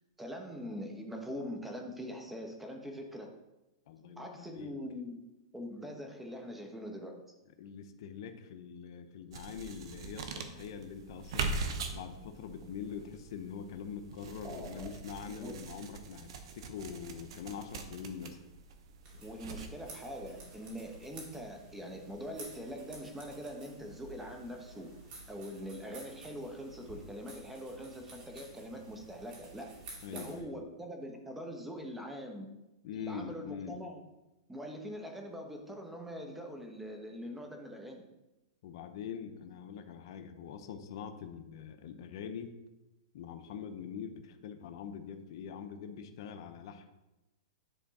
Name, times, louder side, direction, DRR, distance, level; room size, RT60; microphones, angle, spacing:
voice 1, 0.2-3.3 4.2-5.2 5.5-7.2 14.4-15.0 15.3-15.5 19.2-24.9 25.3-29.7 30.1-32.5 32.9-34.0 34.5-38.0, equal, 5° right, 2 dB, 1.0 m, -43 dB
voice 2, 3.9-4.7 7.6-11.6 11.9-18.4 30.0-30.6 32.8-33.8 38.6-42.6 43.1-46.9, left 7 dB, 55° left, 7 dB, 0.7 m, -44 dB
sound 1, 9.3-21.1, right 4 dB, 65° right, 0.9 m, -42 dB
sound 2, 19.0-30.4, right 2 dB, 40° right, 2.3 m, -52 dB
10.0 x 3.5 x 4.2 m, 0.99 s
hypercardioid pair, 145°, 3 cm